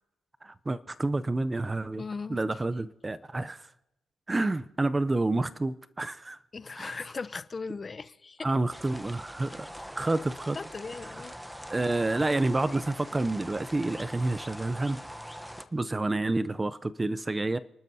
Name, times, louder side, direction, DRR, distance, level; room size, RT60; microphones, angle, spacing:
voice 1, 0.4-2.0 2.3-3.7 4.3-6.4 6.8-7.0 8.4-9.7 10.0-10.6 11.7-15.0 15.7-17.6, right 2 dB, 20° right, 0.6 m, -29 dB
voice 2, 2.0-2.4 6.5-8.5 10.5-11.3, left 4 dB, 30° left, 0.6 m, -38 dB
sound 1, 8.7-15.7, equal, 5° right, 0.9 m, -43 dB
30.0 x 12.0 x 2.8 m
cardioid pair, 90°, 0 cm